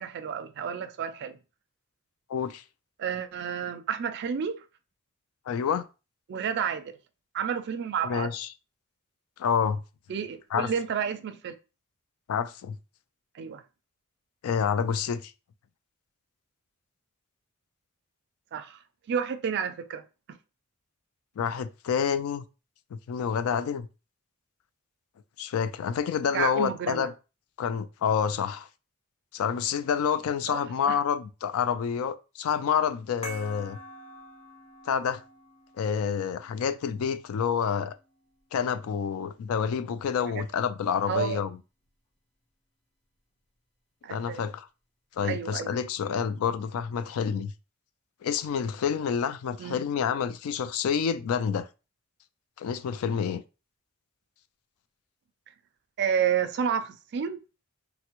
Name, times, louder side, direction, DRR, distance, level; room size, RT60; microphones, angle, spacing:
voice 1, 0.0-1.4 3.0-4.6 6.3-7.0 7.3-8.3 10.1-11.6 13.3-13.6 18.5-18.8 19.1-20.0 20.3-20.4 26.3-27.1 30.5-31.0 40.3-40.4 41.1-41.4 44.0-44.4 45.2-45.7 49.6-49.8 56.0-57.4, right 7 dB, 55° right, 0.3 m, -30 dB
voice 2, 2.3-2.6 5.5-5.9 8.0-8.5 9.4-9.8 10.5-10.7 12.3-12.8 14.4-15.3 21.4-22.4 22.9-23.9 25.4-27.1 27.6-28.7 29.3-33.8 34.9-35.2 35.8-38.0 38.5-41.6 44.1-44.7 45.2-47.5 48.2-51.7 52.6-53.4, left 7 dB, 75° left, 0.3 m, -28 dB
sound 1, 33.2-38.3, equal, 30° left, 0.7 m, -47 dB
3.3 x 2.1 x 2.9 m
head